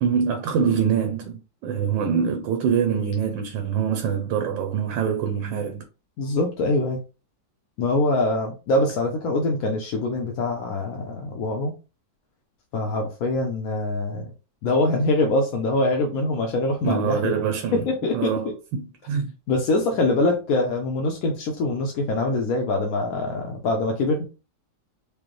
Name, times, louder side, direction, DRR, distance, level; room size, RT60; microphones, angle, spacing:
voice 1, 0.0-5.9 16.8-19.3, right 7 dB, 85° right, 1.3 m, -25 dB
voice 2, 6.2-7.0 7.8-11.7 12.7-14.3 14.6-17.4 17.7-18.5 19.5-24.2, left 2 dB, 65° left, 1.0 m, -24 dB
5.1 x 2.1 x 3.1 m
omnidirectional pair, 2.0 m